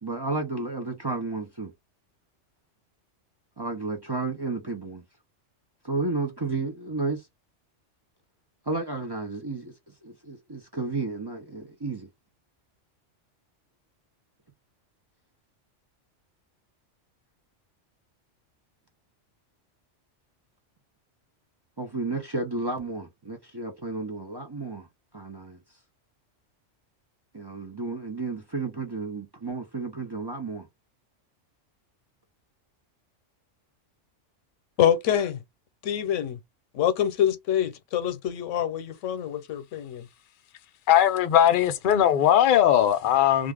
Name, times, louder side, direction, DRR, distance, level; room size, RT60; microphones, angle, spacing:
voice 1, 0.0-1.7 3.6-5.0 5.8-7.2 8.7-9.7 10.0-12.1 21.8-24.9 25.1-25.6 27.3-30.7, right 3 dB, 25° right, 0.5 m, -32 dB
voice 2, 34.8-35.4 35.8-36.4 36.7-40.1, left 10 dB, 90° left, 1.0 m, -25 dB
voice 3, 40.9-43.5, left 10 dB, 55° left, 0.6 m, -19 dB
2.4 x 2.4 x 3.4 m
omnidirectional pair, 1.2 m